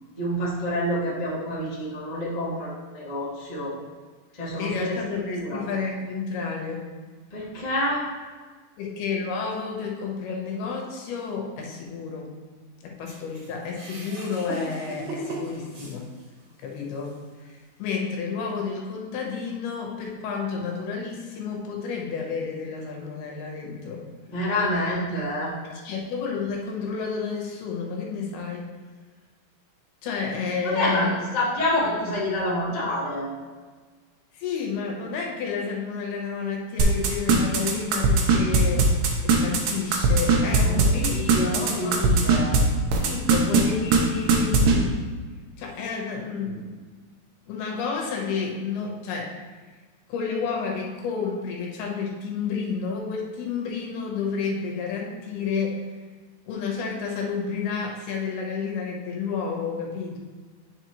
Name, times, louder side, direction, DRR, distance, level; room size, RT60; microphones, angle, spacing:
voice 1, 0.1-3.7 4.4-5.0 5.3-5.6 7.3-8.0 24.3-25.5 30.6-33.3 40.6-42.6, left 1 dB, 35° left, -7 dB, 0.6 m, -27 dB
voice 2, 4.6-6.9 8.8-12.3 12.8-16.1 16.6-24.0 25.6-28.7 30.0-31.2 34.3-39.0 39.2-41.3 41.8-42.0 42.9-45.0 45.6-46.7 47.5-49.3 50.1-55.8 56.5-60.2, left 5 dB, 85° left, -1 dB, 3.1 m, -30 dB
sound 1, 13.1-16.5 17.0-17.1 18.1-18.2, right 1 dB, 55° right, 2.4 m, -37 dB
sound 2, 36.8-42.6 42.9-43.6 43.9-44.0 44.3-44.7, right 6 dB, 75° right, 2.2 m, -19 dB
9.7 x 5.4 x 3.1 m, 1.4 s
omnidirectional pair, 4.4 m